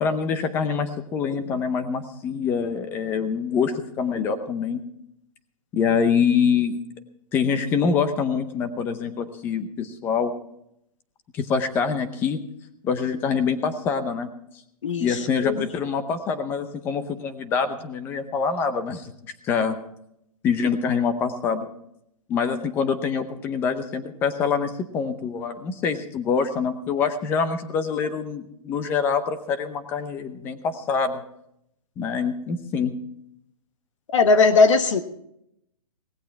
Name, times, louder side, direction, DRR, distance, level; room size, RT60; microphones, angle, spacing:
voice 1, 0.0-4.8 5.7-6.8 7.3-10.3 11.3-12.4 12.8-14.3 15.0-19.8 20.4-21.7 22.3-31.2 32.0-32.9, left 6 dB, 10° left, 10 dB, 0.7 m, -25 dB
voice 2, 14.8-15.6 34.1-35.0, left 4 dB, 55° left, 9 dB, 1.2 m, -19 dB
17.5 x 16.0 x 3.5 m, 0.76 s
hypercardioid pair, 170°, 19 cm